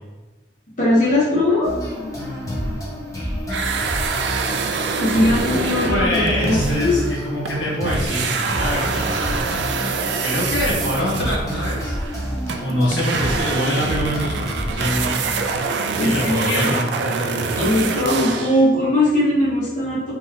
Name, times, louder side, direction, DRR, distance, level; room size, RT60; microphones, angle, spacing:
voice 1, 0.8-1.7 5.0-7.0 16.0-16.7 17.5-20.1, left 1 dB, 45° left, -7 dB, 0.9 m, -19 dB
sound 1, 1.6-15.6, equal, 20° left, 0.9 m, -28 dB
sound 2, 3.5-7.6 7.8-18.6, right 5 dB, 70° right, 0.4 m, -26 dB
voice 2, 5.8-9.4 10.2-11.9 12.6-15.2 16.0-17.4, equal, 85° left, -6 dB, 1.4 m, -24 dB
5.1 x 3.1 x 2.3 m, 1.2 s
head